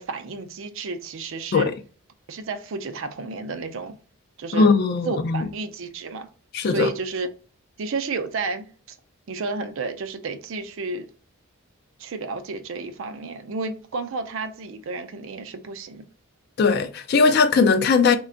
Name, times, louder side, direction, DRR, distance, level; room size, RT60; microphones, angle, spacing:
voice 1, 0.0-1.7 2.3-4.0 4.4-4.7 5.1-6.3 6.6-7.3 7.8-9.0 9.3-11.1 12.0-16.1, right 4 dB, 60° right, 0.4 m, -31 dB
voice 2, 4.5-5.5 6.5-6.9 16.6-18.2, left 4 dB, 45° left, 0.3 m, -19 dB
3.3 x 2.2 x 3.7 m
head